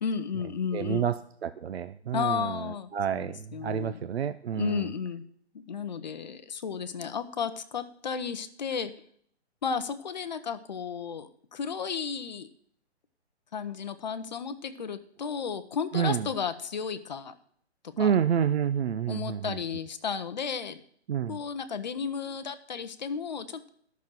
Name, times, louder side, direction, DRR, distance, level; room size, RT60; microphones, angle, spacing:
voice 1, 0.0-1.1 2.1-4.0 4.5-5.2 5.5-8.9 9.6-12.5 13.5-17.3 17.8-18.1 19.1-20.8 21.3-23.7, left 6 dB, 40° left, 10 dB, 0.8 m, -33 dB
voice 2, 0.7-2.6 2.9-4.9 15.9-16.3 18.0-19.6 21.1-21.4, right 8 dB, 65° right, 12 dB, 0.6 m, -28 dB
11.5 x 6.3 x 7.3 m, 0.62 s
hypercardioid pair, 170°, 34 cm